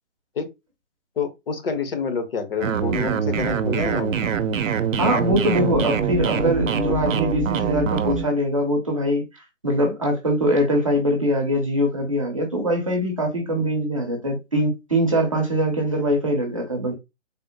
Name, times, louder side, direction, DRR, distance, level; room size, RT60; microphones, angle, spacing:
voice 1, 1.2-4.3, left 5 dB, 45° left, 0.7 m, -28 dB
sound 1, 2.6-8.3, right 6 dB, 75° right, 0.6 m, -24 dB
voice 2, 5.0-16.9, equal, 25° right, 0.5 m, -22 dB
3.5 x 2.0 x 2.7 m
hypercardioid pair, 155°, 39 cm